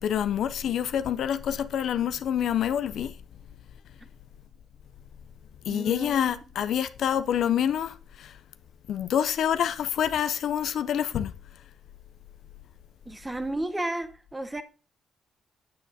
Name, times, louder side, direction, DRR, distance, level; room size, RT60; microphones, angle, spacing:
voice 1, 0.0-3.2 5.6-8.4 8.9-11.3, left 9 dB, 70° left, 0.4 m, -27 dB
voice 2, 5.7-6.3 13.1-14.6, right 1 dB, 15° right, 0.8 m, -33 dB
8.5 x 7.6 x 2.7 m
cardioid pair, 90°, 0 cm